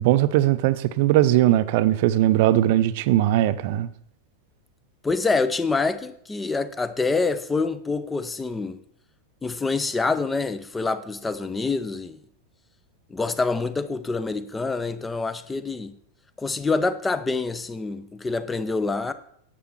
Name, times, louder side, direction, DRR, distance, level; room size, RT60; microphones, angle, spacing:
voice 1, 0.0-3.9, right 14 dB, 50° right, 0.6 m, -19 dB
voice 2, 5.0-8.8 9.4-12.2 13.1-15.9 16.4-19.1, left 3 dB, 10° left, 0.6 m, -26 dB
10.0 x 7.7 x 4.5 m
figure-of-eight pair, 90°, 0 cm